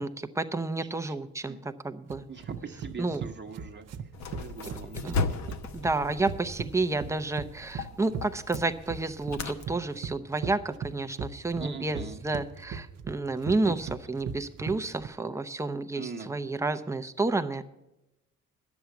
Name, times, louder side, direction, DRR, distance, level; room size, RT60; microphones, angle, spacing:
voice 1, 0.0-2.3 3.0-3.2 5.0-5.2 5.7-17.6, right 3 dB, 10° right, 9 dB, 0.7 m, -30 dB
sound 1, 2.1-15.1, right 6 dB, 55° right, 0.8 m, -38 dB
voice 2, 2.3-3.9 4.4-5.2 5.5-5.6 11.6-12.2 13.7-13.8 16.0-16.3, right 5 dB, 35° right, 3 dB, 1.1 m, -41 dB
sound 2, 4.1-9.6, left 4 dB, 65° left, 1.1 m, -36 dB
10.0 x 7.2 x 9.1 m, 0.93 s
cardioid pair, 90°, 30 cm